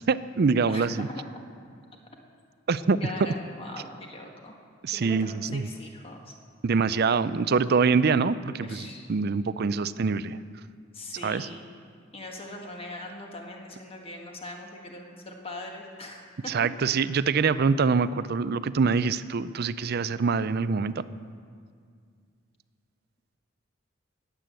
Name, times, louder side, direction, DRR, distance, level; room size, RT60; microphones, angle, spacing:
voice 1, 0.1-1.1 2.7-3.0 4.8-5.7 6.6-10.4 11.2-11.5 16.5-21.0, right 5 dB, 50° right, 15 dB, 0.5 m, -25 dB
voice 2, 0.7-1.4 3.0-4.6 4.9-6.4 8.5-9.1 10.9-11.7 12.1-16.5 17.0-17.2, left 1 dB, 30° left, 1 dB, 1.6 m, -41 dB
19.5 x 8.4 x 7.6 m, 2.1 s
head